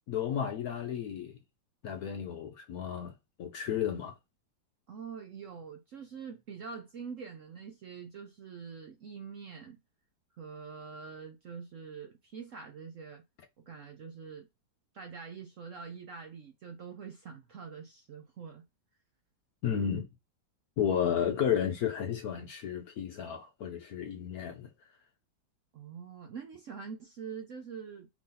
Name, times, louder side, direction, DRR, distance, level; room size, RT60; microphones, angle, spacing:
voice 1, 0.1-1.4 1.8-3.1 3.4-4.1 19.6-20.1 20.8-24.7, left 8 dB, 65° left, 0.9 m, -32 dB
voice 2, 4.9-9.8 10.4-13.2 13.7-14.5 14.9-18.6 25.7-28.1, right 6 dB, 75° right, 0.7 m, -45 dB
4.8 x 2.8 x 3.7 m
omnidirectional pair, 2.1 m